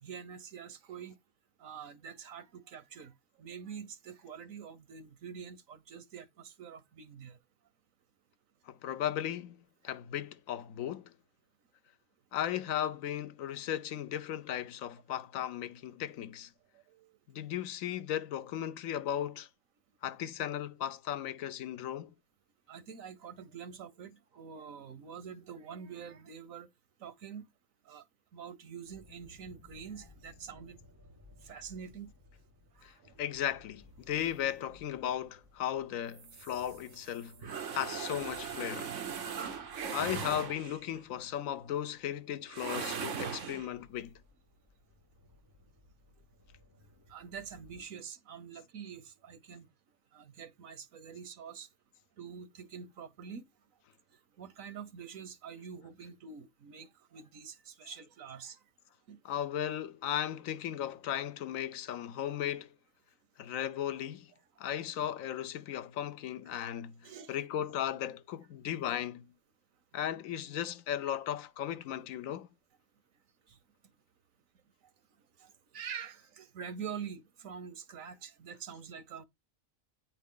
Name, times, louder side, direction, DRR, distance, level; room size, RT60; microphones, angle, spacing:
voice 1, 0.0-1.2 1.6-7.4 16.7-17.1 22.7-26.7 27.0-27.5 27.9-28.0 28.3-30.8 31.4-32.1 32.8-33.1 39.2-39.3 47.1-49.7 50.1-51.7 52.2-53.5 54.4-58.6 59.1-59.2 67.0-67.4 73.5-73.6 75.4-79.3, right 7 dB, 85° right, 1.4 m, -46 dB
voice 2, 8.7-11.1 12.3-16.5 17.3-19.5 20.0-22.1 32.8-32.9 33.2-38.9 39.9-44.1 59.2-62.7 63.4-64.3 64.6-69.3 69.9-72.5, left 10 dB, 85° left, 1.0 m, -36 dB
sound 1, 28.8-47.8, left 1 dB, 15° right, 1.4 m, -60 dB
sound 2, 36.1-40.9 42.5-43.7, right 6 dB, 70° right, 1.3 m, -39 dB
9.3 x 4.9 x 3.7 m
omnidirectional pair, 1.4 m